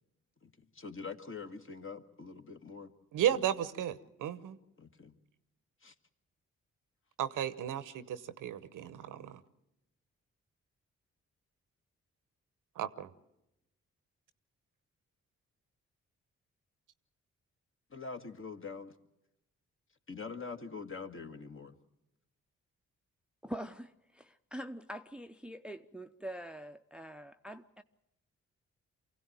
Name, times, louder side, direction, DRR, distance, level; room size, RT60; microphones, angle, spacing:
voice 1, 0.4-2.9 3.2-3.4 4.8-5.1 5.8-5.9 17.9-18.9 20.1-21.8, left 4 dB, 40° left, 1.8 m, -44 dB
voice 2, 3.1-4.6 7.2-9.4 12.8-13.1, right 10 dB, 75° right, 0.9 m, -34 dB
voice 3, 23.4-27.8, equal, 5° right, 0.7 m, -44 dB
24.5 x 16.0 x 8.9 m
hypercardioid pair, 40°, 32 cm